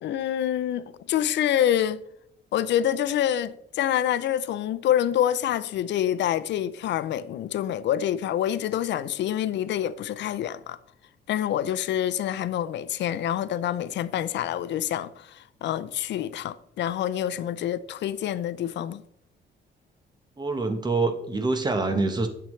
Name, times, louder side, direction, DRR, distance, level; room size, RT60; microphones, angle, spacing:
voice 1, 0.0-2.0 2.5-10.8 11.3-19.0, left 11 dB, 70° left, 0.5 m, -27 dB
voice 2, 20.4-22.3, right 3 dB, 20° right, 1.0 m, -25 dB
10.5 x 6.9 x 3.2 m
cardioid pair, 135°, 19 cm